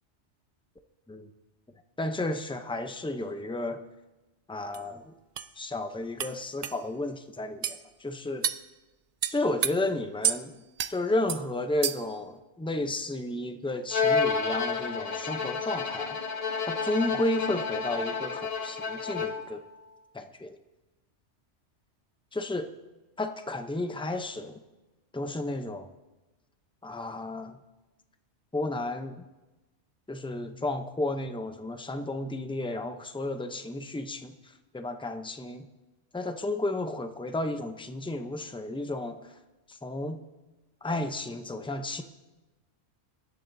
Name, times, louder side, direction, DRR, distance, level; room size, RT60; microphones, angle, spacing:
voice 1, 2.0-3.8 4.5-5.0 5.6-8.5 9.3-10.6 10.9-16.2 16.7-19.6 20.1-20.6 22.3-22.7 23.2-24.6 25.1-25.9 26.8-27.6 28.5-29.2 30.1-34.3 34.7-35.7 36.1-39.2 39.7-40.2 40.8-42.0, left 2 dB, 10° left, 7 dB, 0.3 m, -32 dB
sound 1, 4.7-4.8 5.4-5.5 6.2-6.3 6.6-6.8 7.6-7.8 8.4-8.6 9.2-9.7 10.2-10.4 10.8-10.9 11.3-11.4 11.8-12.1, right 8 dB, 75° right, 0.3 m, -29 dB
Bowed string instrument, 13.9-19.6, left 5 dB, 35° left, 1.0 m, -30 dB
23.0 x 11.5 x 2.7 m, 1.1 s
omnidirectional pair, 1.2 m